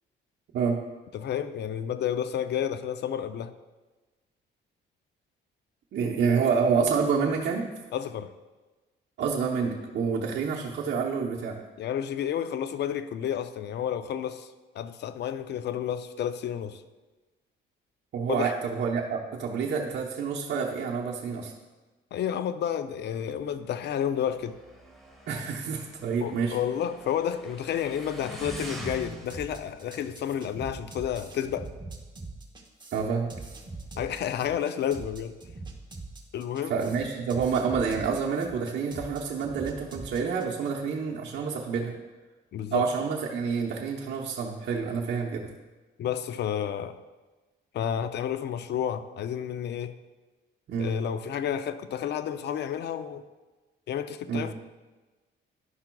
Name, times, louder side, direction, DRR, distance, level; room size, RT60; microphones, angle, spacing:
voice 1, 1.1-3.5 7.9-8.3 11.8-16.8 18.3-18.5 22.1-24.6 26.2-31.7 34.0-35.4 36.3-36.8 42.5-42.9 46.0-47.0 47.7-50.0 50.8-53.3 53.9-54.5, left 9 dB, 60° left, 12 dB, 0.5 m, -31 dB
voice 2, 5.9-7.7 9.2-11.6 18.1-21.5 25.3-26.6 32.9-33.3 36.7-41.9 42.7-45.4 50.7-50.9 54.3-54.5, right 5 dB, 60° right, -2 dB, 0.8 m, -28 dB
Motorcycle, 23.1-31.4, equal, ahead, 1.3 m, -45 dB
sound 1, 28.4-40.7, right 3 dB, 20° right, 1.0 m, -42 dB
11.0 x 5.7 x 2.3 m, 1.2 s
cardioid pair, 90°, 20 cm